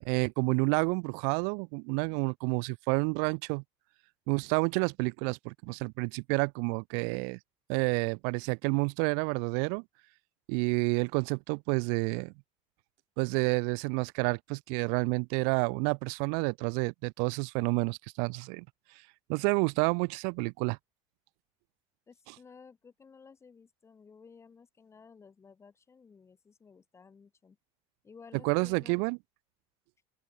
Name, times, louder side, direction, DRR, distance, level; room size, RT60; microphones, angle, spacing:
voice 1, 0.0-3.6 4.3-7.4 7.7-9.8 10.5-12.3 13.2-18.6 19.3-20.8 28.4-29.2, right 40 dB or more, 80° right, 0.6 m, -29 dB
voice 2, 22.1-27.6 28.0-29.0, left 5 dB, 20° left, 4.8 m, -55 dB
open air
cardioid pair, 160°, 14 cm